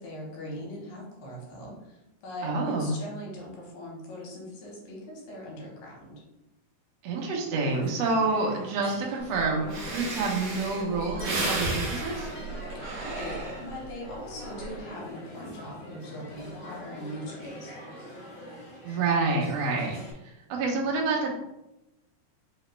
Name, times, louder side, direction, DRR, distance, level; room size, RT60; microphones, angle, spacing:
voice 1, 0.0-6.2 12.7-17.8, left 1 dB, 75° left, -2 dB, 2.7 m, -41 dB
voice 2, 2.4-2.9 7.0-12.3 18.8-20.0 20.2-21.4, right 3 dB, 85° right, -1 dB, 1.4 m, -28 dB
sound 1, 7.7-20.1, equal, 55° left, 1.3 m, -43 dB
Breathing, 9.4-9.5 9.7-13.9 14.4-14.8, right 2 dB, 65° right, 1.5 m, -33 dB
5.4 x 2.9 x 3.2 m, 0.92 s
omnidirectional pair, 4.1 m